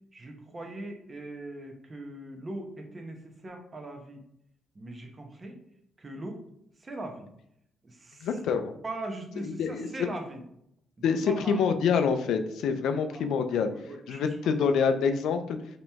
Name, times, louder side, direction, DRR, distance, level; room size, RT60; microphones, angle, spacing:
voice 1, 0.1-4.2 4.7-5.6 6.0-6.4 6.8-7.3 7.8-8.3 8.8-10.4 11.0-11.5 13.1-14.7, right 2 dB, 30° right, 3 dB, 1.0 m, -40 dB
voice 2, 8.2-8.7 9.4-9.9 11.0-13.7 14.1-15.6, left 6 dB, 80° left, 8 dB, 0.5 m, -26 dB
5.1 x 3.0 x 3.5 m, 0.74 s
cardioid pair, 90°, 0 cm